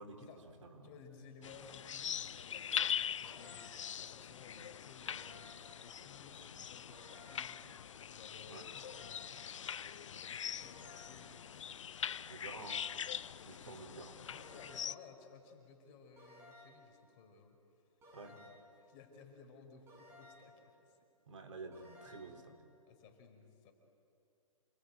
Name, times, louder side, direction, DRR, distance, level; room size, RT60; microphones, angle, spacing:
voice 1, 0.0-0.9 8.5-8.7 12.3-13.1 13.4-14.2 18.1-18.4 21.3-22.6, right 3 dB, 60° right, 5 dB, 3.4 m, -50 dB
voice 2, 0.8-7.7 8.1-11.9 12.5-12.7 13.6-17.6 18.3-18.5 18.8-21.0 22.9-23.7, left 5 dB, 30° left, 4 dB, 4.7 m, -58 dB
sound 1, 1.4-14.9, left 8 dB, 60° left, 0.7 m, -42 dB
sound 2, 3.2-3.9 5.1-5.8 6.9-7.6 8.8-9.5 10.6-11.3 12.5-13.2 14.3-15.0 16.2-16.9 18.0-18.8 19.9-20.6 21.7-22.5, left 1 dB, 15° right, 6.6 m, -58 dB
28.0 x 22.5 x 9.0 m, 2.5 s
figure-of-eight pair, 135°, 18 cm